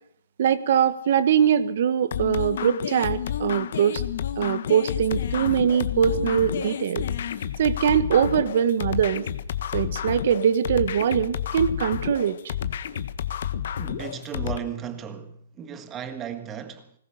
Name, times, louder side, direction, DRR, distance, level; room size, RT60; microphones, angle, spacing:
voice 1, 0.4-4.0 4.4-7.1 7.6-9.2 9.7-12.4, right 8 dB, 50° right, 1.5 m, -22 dB
sound 1, 2.1-14.6, left 9 dB, 55° left, 1.5 m, -30 dB
voice 2, 13.8-16.9, right 8 dB, 15° right, 1.6 m, -35 dB
20.5 x 19.0 x 6.6 m
hypercardioid pair, 170°, 0 cm